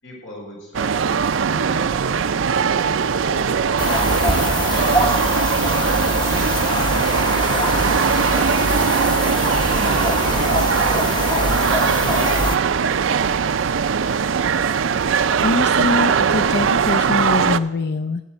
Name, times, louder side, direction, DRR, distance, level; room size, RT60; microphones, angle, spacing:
voice 1, 0.0-3.6 4.6-8.7 9.8-13.0, left 1 dB, 90° left, -1 dB, 6.4 m, -39 dB
sound 1, 0.7-17.6, right 6 dB, 85° right, 0.5 m, -20 dB
sound 2, 3.8-12.6, left 2 dB, 25° left, 0.8 m, -23 dB
voice 2, 15.4-18.2, left 3 dB, 55° left, 9 dB, 0.5 m, -23 dB
16.5 x 8.7 x 8.0 m, 0.98 s
head